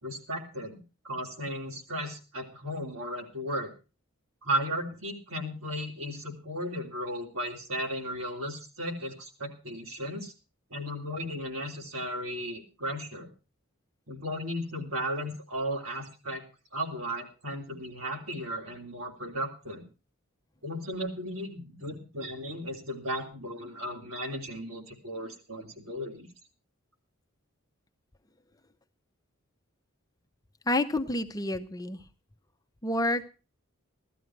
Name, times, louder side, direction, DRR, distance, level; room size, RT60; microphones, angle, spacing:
voice 1, 0.0-3.7 4.4-10.3 10.7-13.3 14.1-16.4 16.7-19.9 20.6-26.3, equal, 80° right, 1 dB, 3.3 m, -35 dB
voice 2, 30.7-32.0 32.8-33.3, left 1 dB, 15° left, 6 dB, 0.7 m, -29 dB
16.0 x 13.0 x 4.5 m, 0.33 s
head